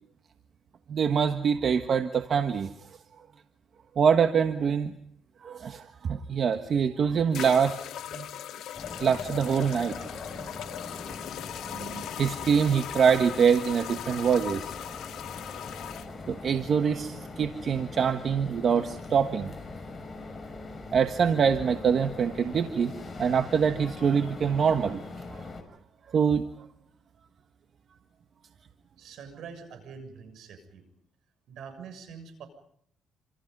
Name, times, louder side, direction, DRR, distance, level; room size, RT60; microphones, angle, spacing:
voice 1, 0.9-2.7 3.9-4.9 5.4-7.8 8.1-8.3 9.0-10.0 11.7-14.7 16.3-19.5 20.9-22.9 23.2-25.0 25.3-25.4 26.1-26.4, right 7 dB, 55° right, 8 dB, 1.5 m, -24 dB
sound 1, 6.5-6.6 7.3-16.1, left 11 dB, 80° left, 1.1 m, -39 dB
sound 2, 8.7-25.6, left 3 dB, 25° left, 6.2 m, -42 dB
voice 2, 29.0-30.9 31.5-32.5, right 6 dB, 75° right, 8 dB, 7.1 m, -44 dB
27.5 x 27.5 x 5.5 m, 0.69 s
cardioid pair, 90°, 0 cm